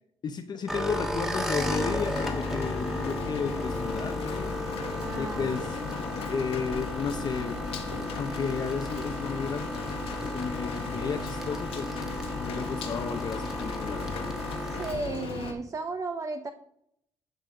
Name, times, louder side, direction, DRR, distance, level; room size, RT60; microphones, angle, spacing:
voice 1, 0.2-4.5 5.2-5.8 6.3-7.6 8.1-9.7 10.2-12.0 12.3-14.3, left 6 dB, 50° left, 7 dB, 0.7 m, -33 dB
sound 1, 0.5-1.1 1.3-3.0 3.3-6.1 6.3-7.3 7.5-9.2 9.4-10.4 10.6-12.3 12.6-12.8, right 2 dB, 65° right, 2.4 m, -49 dB
sound 2, 0.7-14.9, equal, 5° right, 1.2 m, -34 dB
Rain, 1.6-15.5, left 7 dB, 80° left, 1.0 m, -37 dB
voice 2, 5.0-5.6 14.6-16.5, right 3 dB, 35° right, 7 dB, 0.7 m, -34 dB
10.5 x 4.0 x 4.9 m, 0.70 s
cardioid pair, 100°, 10 cm